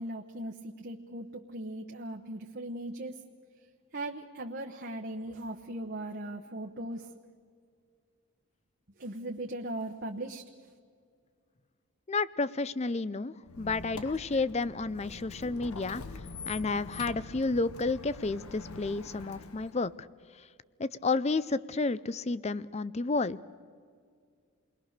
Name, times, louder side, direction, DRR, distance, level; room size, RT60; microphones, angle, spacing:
voice 1, 0.0-3.2 3.9-7.3 9.0-10.4, right 1 dB, 45° right, 2 dB, 1.0 m, -39 dB
voice 2, 12.1-16.0 16.5-19.9 20.8-23.4, left 3 dB, 30° left, 18 dB, 0.5 m, -31 dB
Squeak, 13.4-19.9, left 3 dB, 75° left, 1.3 m, -45 dB
28.5 x 21.0 x 6.6 m, 2.1 s
head